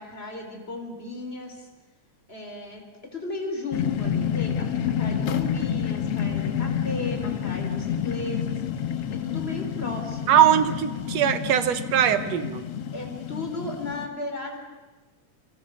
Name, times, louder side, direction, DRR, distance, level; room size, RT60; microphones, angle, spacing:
voice 1, 0.0-1.7 2.3-4.7 5.0-8.5 9.1-10.6 12.9-14.6, left 2 dB, 20° left, 3 dB, 4.1 m, -35 dB
sound 1, 3.7-14.1, left 8 dB, 60° left, 2.0 m, -29 dB
voice 2, 10.3-12.6, right 10 dB, 65° right, 11 dB, 2.0 m, -21 dB
29.0 x 25.0 x 6.5 m, 1.2 s
omnidirectional pair, 3.5 m